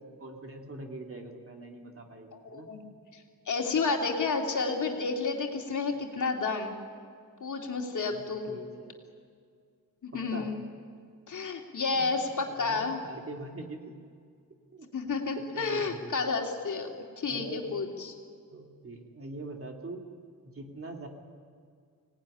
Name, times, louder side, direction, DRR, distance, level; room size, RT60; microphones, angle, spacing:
voice 1, 0.0-2.7 8.1-9.0 10.1-10.5 11.9-12.1 12.5-13.9 14.7-14.9 15.3-16.4 17.3-17.7 18.5-20.1 20.5-21.1, right 2 dB, 40° right, 2 dB, 2.8 m, -43 dB
voice 2, 2.5-2.8 3.1-6.8 7.4-8.5 10.0-10.6 11.3-13.0 14.9-16.9 17.2-18.1, left 4 dB, 60° left, 2 dB, 2.8 m, -31 dB
24.5 x 18.0 x 10.0 m, 2.2 s
wide cardioid pair, 125°, 34 cm